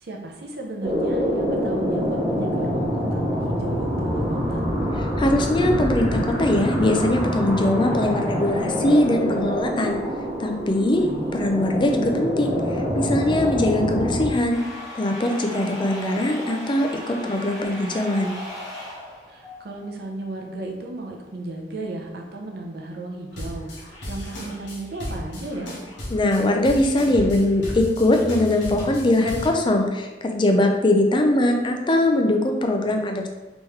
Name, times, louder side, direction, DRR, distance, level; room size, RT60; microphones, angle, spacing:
voice 1, 0.0-4.6 10.9-11.3 19.3-25.7, right 2 dB, 60° right, 1 dB, 0.6 m, -34 dB
sound 1, 0.8-14.3, equal, 25° right, 0.9 m, -25 dB
voice 2, 5.0-10.0 10.4-11.0 11.3-14.6 14.9-18.4 26.1-33.3, left 1 dB, 25° left, 3 dB, 0.4 m, -21 dB
sound 2, 14.5-20.0, equal, 5° right, 0.9 m, -37 dB
sound 3, 23.3-29.5, equal, 85° left, 1.1 m, -34 dB
3.5 x 3.0 x 3.1 m, 1.1 s
head